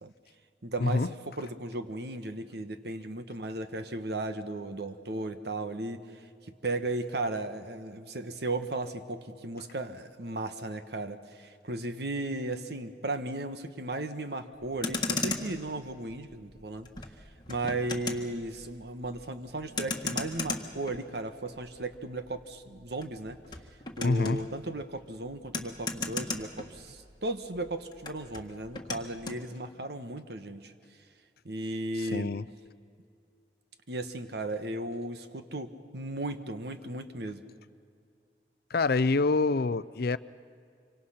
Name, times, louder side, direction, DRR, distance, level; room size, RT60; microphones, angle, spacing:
voice 1, 0.6-1.1 1.4-16.9 17.5-23.4 24.0-30.7 31.4-32.3 33.9-37.4, right 2 dB, 65° right, 9 dB, 1.3 m, -36 dB
Motor vehicle (road), 14.6-27.3 27.5-29.4, left 3 dB, 25° left, 1.6 m, -37 dB
voice 2, 24.0-24.4 32.0-32.5 38.7-40.2, left 3 dB, 60° left, 16 dB, 0.5 m, -26 dB
26.0 x 24.5 x 5.8 m, 2.4 s
head